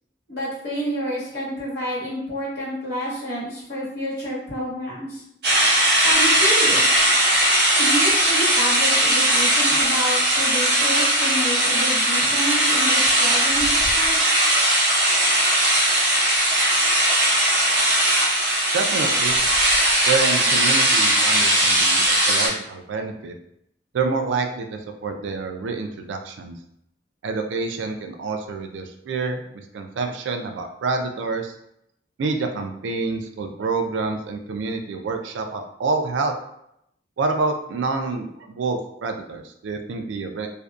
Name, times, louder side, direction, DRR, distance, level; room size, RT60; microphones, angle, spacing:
voice 1, 0.3-5.2 6.0-6.9 7.8-14.3, equal, 60° left, -7 dB, 1.1 m, -29 dB
sound 1, 5.4-22.5, right 1 dB, 60° right, 0.7 m, -19 dB
voice 2, 18.7-19.4 20.0-23.3 23.9-26.6 27.2-31.5 32.2-36.3 37.2-40.5, right 4 dB, 85° right, 5 dB, 0.3 m, -27 dB
2.5 x 2.1 x 2.3 m, 0.77 s
head